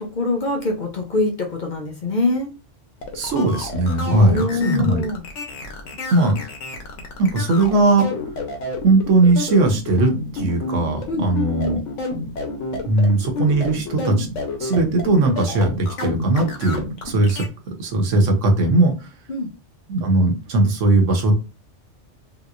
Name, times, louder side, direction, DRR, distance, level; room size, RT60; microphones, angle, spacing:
voice 1, 0.0-2.5 4.1-5.2 11.1-11.3 19.3-19.5, left 3 dB, 50° left, 1 dB, 0.7 m, -24 dB
sound 1, 3.0-17.5, left 3 dB, 80° left, 1.2 m, -30 dB
voice 2, 3.1-5.0 6.1-6.4 7.2-8.1 8.8-11.8 12.8-14.3 14.6-19.1 19.9-21.3, right 2 dB, 80° right, 3 dB, 1.2 m, -19 dB
3.5 x 2.9 x 2.4 m, 0.30 s
omnidirectional pair, 1.3 m